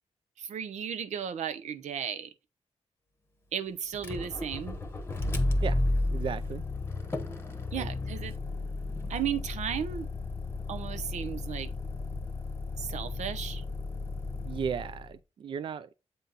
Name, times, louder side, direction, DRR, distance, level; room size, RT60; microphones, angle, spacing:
voice 1, 0.4-2.3 3.5-4.8 7.7-8.3 9.1-10.1 10.7-11.7 12.8-13.6, right 8 dB, 85° right, 0.7 m, -35 dB
Motor vehicle (road), 3.9-15.1, left 2 dB, 20° left, 0.9 m, -33 dB
voice 2, 6.1-6.6 7.8-7.9 14.5-15.9, right 7 dB, 45° right, 0.4 m, -35 dB
8.0 x 4.0 x 4.0 m
wide cardioid pair, 175°, 12 cm